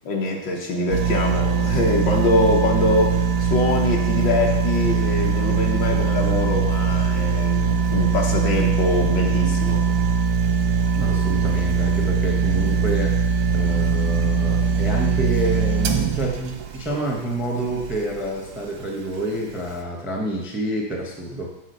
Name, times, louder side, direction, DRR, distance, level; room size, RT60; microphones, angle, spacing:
voice 1, 0.0-9.8, left 2 dB, 60° left, 0 dB, 1.6 m, -23 dB
sound 1, 0.9-18.1 18.6-18.7, right 5 dB, 85° right, 1.7 m, -21 dB
voice 2, 10.9-13.1 13.5-21.5, right 1 dB, ahead, 0 dB, 0.6 m, -28 dB
7.6 x 4.0 x 6.7 m, 0.96 s
omnidirectional pair, 2.3 m